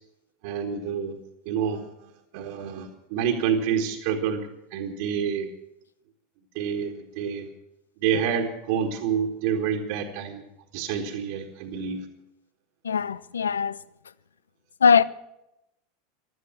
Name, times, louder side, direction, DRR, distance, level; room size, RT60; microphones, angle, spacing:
voice 1, 0.4-1.2 1.4-1.9 2.3-5.5 6.5-7.5 8.0-10.4 10.7-12.0, right 7 dB, 55° right, 1.5 m, -28 dB
voice 2, 12.8-13.8 14.8-15.0, left 6 dB, 75° left, 0.4 m, -20 dB
16.0 x 12.0 x 6.1 m
figure-of-eight pair, 80°, 0 cm